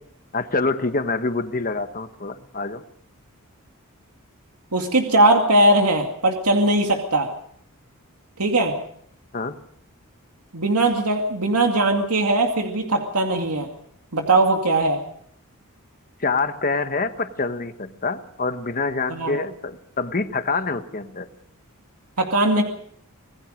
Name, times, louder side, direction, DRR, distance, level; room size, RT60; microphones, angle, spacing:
voice 1, 0.3-2.8 9.3-9.5 16.2-21.3, left 3 dB, 40° left, 9 dB, 1.3 m, -26 dB
voice 2, 4.7-7.3 8.4-8.8 10.5-13.7 14.1-15.0 19.1-19.4 22.2-22.6, right 2 dB, 90° right, 3 dB, 2.3 m, -19 dB
26.0 x 19.5 x 5.2 m, 0.65 s
head